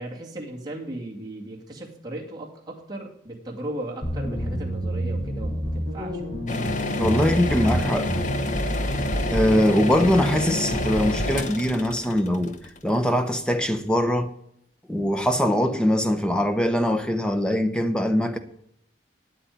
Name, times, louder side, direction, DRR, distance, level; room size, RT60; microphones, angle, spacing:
voice 1, 0.0-6.3, right 1 dB, 20° right, 2.3 m, -36 dB
sound 1, 4.0-11.4, equal, 25° left, 5.5 m, -29 dB
sound 2, 6.5-13.4, left 2 dB, 45° left, 1.0 m, -29 dB
voice 2, 7.0-8.1 9.3-12.5 12.8-14.3 14.9-18.4, equal, 5° left, 0.9 m, -22 dB
8.7 x 8.5 x 9.3 m
head